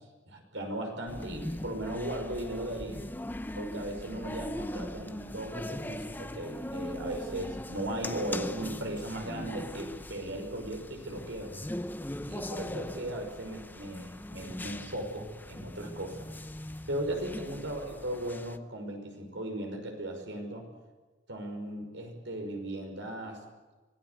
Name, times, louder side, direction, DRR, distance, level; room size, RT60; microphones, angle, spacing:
voice 1, 0.3-3.0 3.6-11.5 12.3-16.3 16.9-20.7 21.3-23.4, right 1 dB, 75° right, 4 dB, 5.6 m, -37 dB
sound 1, 1.1-18.6, left 1 dB, 10° left, 0.7 m, -40 dB
25.5 x 17.5 x 8.3 m, 1.2 s
head